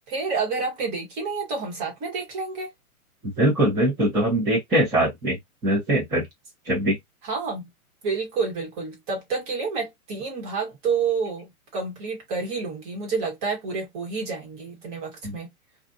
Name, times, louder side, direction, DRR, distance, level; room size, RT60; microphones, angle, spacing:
voice 1, 0.1-2.7 7.2-7.7 8.0-15.5, right 4 dB, 25° right, 1.2 m, -29 dB
voice 2, 3.2-6.2 6.7-7.0 15.2-15.3, right 1 dB, 5° right, 0.8 m, -22 dB
2.5 x 2.4 x 2.5 m
hypercardioid pair, 155°, 45 cm